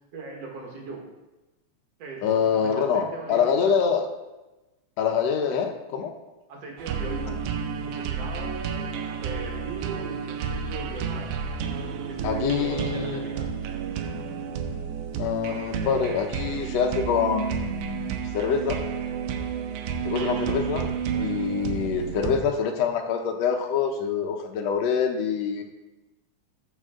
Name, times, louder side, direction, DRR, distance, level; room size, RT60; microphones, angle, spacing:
voice 1, 0.1-1.0 2.0-3.8 6.5-7.4 7.8-11.3 12.1-13.4 20.1-20.4, right 4 dB, 60° right, -1 dB, 2.4 m, -39 dB
voice 2, 2.2-4.1 5.0-6.1 12.2-13.2 15.2-18.8 20.0-25.6, left 6 dB, 70° left, 4 dB, 1.9 m, -25 dB
sound 1, 6.8-22.4, right 7 dB, 85° right, 2.1 m, -31 dB
13.5 x 5.3 x 3.7 m, 1.1 s
omnidirectional pair, 3.5 m